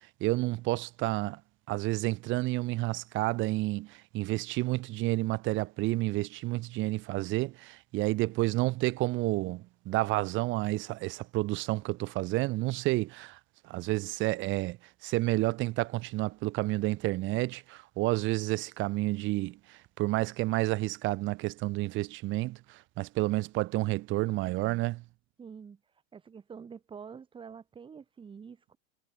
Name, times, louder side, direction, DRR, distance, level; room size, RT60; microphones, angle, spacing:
voice 1, 0.0-1.4 1.7-13.4 13.6-25.0, right 19 dB, 30° right, 1.7 m, -30 dB
voice 2, 25.4-25.8 26.1-28.8, right 6 dB, 10° right, 3.5 m, -47 dB
supercardioid pair, 165°, 40 cm